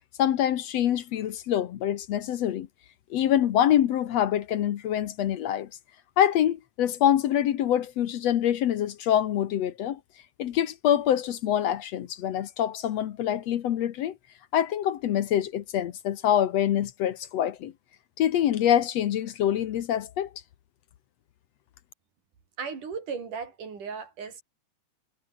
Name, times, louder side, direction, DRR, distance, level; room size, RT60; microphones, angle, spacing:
voice 1, 0.2-2.7 3.1-5.7 6.2-10.0 10.4-14.2 14.5-17.7 18.2-20.3, left 10 dB, 65° left, 2.1 m, -25 dB
voice 2, 22.6-24.4, right 5 dB, 85° right, 5.8 m, -36 dB
omnidirectional pair, 3.5 m